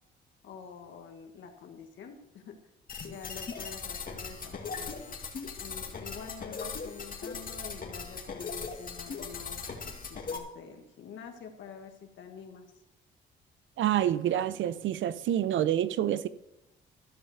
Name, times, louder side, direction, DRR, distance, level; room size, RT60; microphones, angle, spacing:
voice 1, 0.4-2.7 3.0-5.0 5.6-12.7, left 6 dB, 70° left, 1.7 m, -47 dB
sound 1, 2.9-10.4, left 5 dB, 45° left, 2.1 m, -39 dB
voice 2, 13.8-16.3, right 11 dB, 75° right, 0.7 m, -27 dB
14.0 x 5.6 x 8.1 m
cardioid pair, 90°, 20 cm